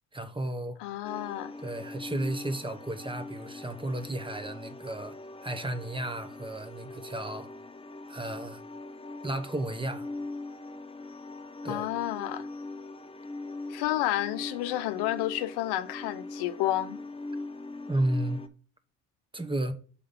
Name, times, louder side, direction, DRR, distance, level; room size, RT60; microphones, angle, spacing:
voice 1, 0.1-0.8 1.6-5.2 5.4-7.5 8.1-8.6 9.2-10.1 11.6-11.9 17.9-18.4 19.3-19.7, right 1 dB, 10° right, 1.1 m, -33 dB
voice 2, 0.8-1.5 11.6-12.5 13.7-17.0, left 14 dB, 75° left, 0.7 m, -30 dB
sound 1, 1.0-18.5, left 2 dB, 15° left, 0.8 m, -41 dB
6.7 x 3.8 x 5.4 m
hypercardioid pair, 55°, 41 cm